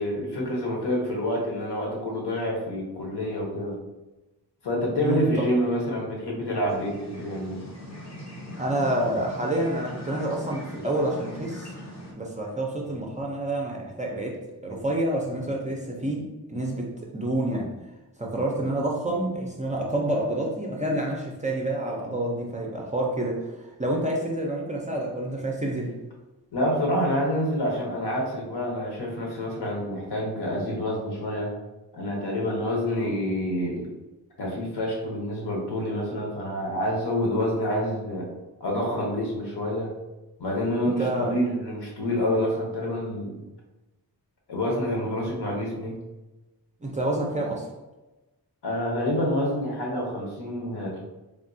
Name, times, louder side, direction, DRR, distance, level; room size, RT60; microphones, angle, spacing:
voice 1, 0.0-3.8 4.6-7.6 26.5-31.5 31.9-33.9 34.4-38.2 38.6-39.9 40.4-43.4 44.5-46.0 48.6-51.0, equal, 75° left, -1 dB, 1.0 m, -27 dB
voice 2, 5.0-5.4 8.6-11.7 12.2-17.7 18.2-25.9 41.0-41.4 46.8-47.7, right 1 dB, 20° right, -2 dB, 0.4 m, -28 dB
sound 1, 6.7-12.1, equal, 40° left, 0.8 m, -41 dB
3.5 x 2.2 x 2.6 m, 1.1 s
wide cardioid pair, 125°, 41 cm